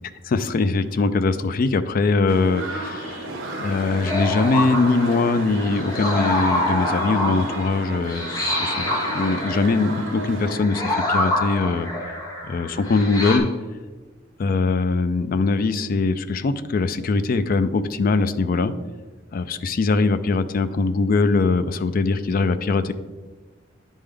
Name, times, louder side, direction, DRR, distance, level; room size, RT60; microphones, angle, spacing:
voice 1, 0.3-3.3 3.6-11.9 12.4-13.5 14.4-18.7 19.3-22.9, left 3 dB, 45° left, 11 dB, 0.3 m, -22 dB
sound 1, 2.3-10.6, right 2 dB, 85° right, 1.0 m, -33 dB
sound 2, 4.0-13.4, left 1 dB, 20° left, 1.1 m, -26 dB
10.0 x 3.6 x 3.3 m, 1.3 s
head